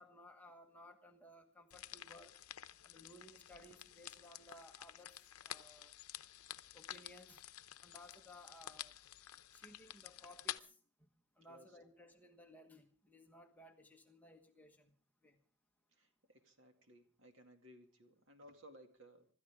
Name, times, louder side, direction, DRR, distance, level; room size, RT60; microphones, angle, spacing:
voice 1, 0.0-2.4 2.8-5.2 5.4-5.9 6.7-7.4 7.8-8.9 9.5-11.1 11.4-14.9 15.2-15.4, left 1 dB, 5° left, 4 dB, 1.3 m, -59 dB
sound 1, 1.7-10.6, left 12 dB, 85° left, 0.7 m, -51 dB
voice 2, 16.0-19.3, equal, 60° right, 5 dB, 2.3 m, -61 dB
26.0 x 13.5 x 3.6 m, 0.39 s
head